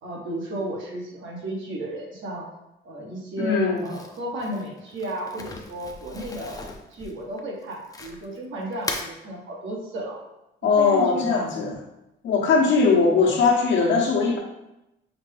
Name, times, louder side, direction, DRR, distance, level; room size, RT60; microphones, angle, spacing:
voice 1, 0.0-2.5 2.8-6.6 6.9-10.2 10.6-11.5 12.6-12.7, right 1 dB, 75° right, -2 dB, 1.4 m, -33 dB
voice 2, 3.4-3.8 10.6-11.7 12.2-14.4, left 4 dB, 70° left, -1 dB, 1.1 m, -20 dB
Crumpling crinkling, 3.8-8.4 8.7-9.1, left 2 dB, 20° left, 0.5 m, -37 dB
5.7 x 2.2 x 3.3 m, 0.90 s
cardioid pair, 90°, 20 cm